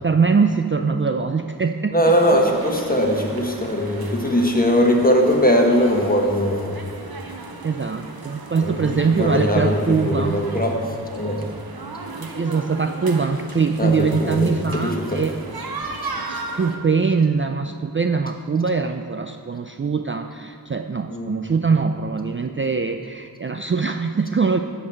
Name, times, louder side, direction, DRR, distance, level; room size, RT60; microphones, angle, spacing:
voice 1, 0.0-2.0 7.6-10.5 12.2-15.4 16.3-24.6, right 5 dB, 35° right, 5 dB, 0.4 m, -22 dB
voice 2, 1.9-6.8 8.6-11.4 13.8-14.5 14.8-15.2 21.1-21.4, equal, 25° left, 1 dB, 1.4 m, -20 dB
sound 1, 2.0-16.8, right 3 dB, 70° right, 1.0 m, -36 dB
11.0 x 4.0 x 7.8 m, 2.2 s
wide cardioid pair, 40°, 38 cm